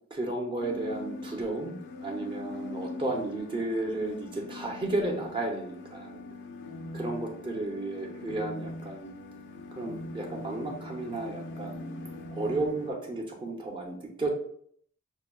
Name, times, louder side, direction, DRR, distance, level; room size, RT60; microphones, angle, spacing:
voice 1, 0.1-6.2 6.9-9.1 9.7-14.3, right 2 dB, 25° right, 0 dB, 0.6 m, -33 dB
sound 1, 0.6-12.9, left 2 dB, 55° left, 0.4 m, -42 dB
6.3 x 2.2 x 2.3 m, 0.63 s
head